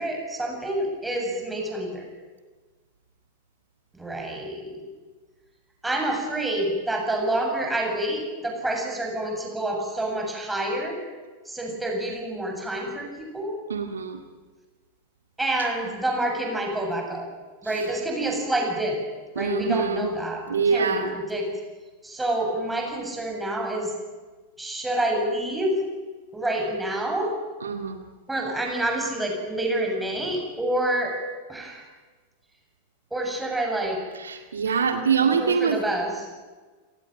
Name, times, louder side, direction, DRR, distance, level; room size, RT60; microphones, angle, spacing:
voice 1, 0.0-2.1 3.9-4.8 5.8-11.0 11.5-13.6 15.4-17.3 17.6-19.0 19.3-21.5 22.0-23.9 24.6-25.9 26.3-27.3 28.3-31.1 31.5-31.8 33.1-34.0 34.6-34.9 35.2-36.2, right 1 dB, 5° right, 1 dB, 7.8 m, -28 dB
voice 2, 13.7-14.2 17.7-17.8 19.4-20.1 20.5-21.2 27.6-28.0 34.1-35.8, right 6 dB, 70° right, 6 dB, 2.0 m, -24 dB
29.5 x 19.0 x 9.1 m, 1.4 s
figure-of-eight pair, 90°, 0 cm